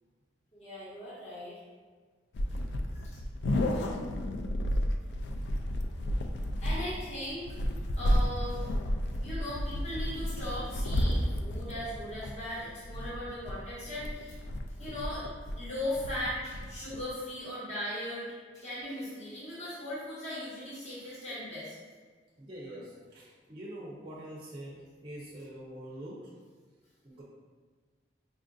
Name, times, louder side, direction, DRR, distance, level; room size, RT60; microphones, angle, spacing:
voice 1, 0.5-1.6 2.5-2.6 2.9-3.2 6.6-8.7 9.2-14.3 14.8-15.3 15.6-18.3 18.5-21.7, left 1 dB, 40° left, -10 dB, 1.2 m, -38 dB
sound 1, 2.3-17.1, equal, 75° left, 0.3 m, -32 dB
voice 2, 22.4-26.3 27.0-27.2, right 1 dB, 30° right, -5 dB, 0.5 m, -44 dB
4.9 x 2.4 x 2.5 m, 1.5 s
head